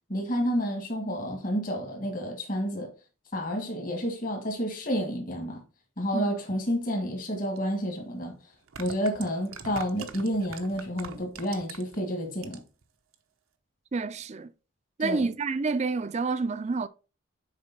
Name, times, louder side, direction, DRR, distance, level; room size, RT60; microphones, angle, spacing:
voice 1, 0.1-2.9 3.3-5.6 6.0-8.3 8.8-12.6 15.0-15.3, equal, 40° left, 1.5 m, -30 dB
sound 1, 7.6-7.7 8.5-12.0 12.3-12.8 13.1-13.2, right 6 dB, 85° right, 0.8 m, -42 dB
voice 2, 13.9-14.5 15.0-16.9, right 4 dB, 35° right, 0.4 m, -28 dB
6.6 x 4.3 x 4.1 m
head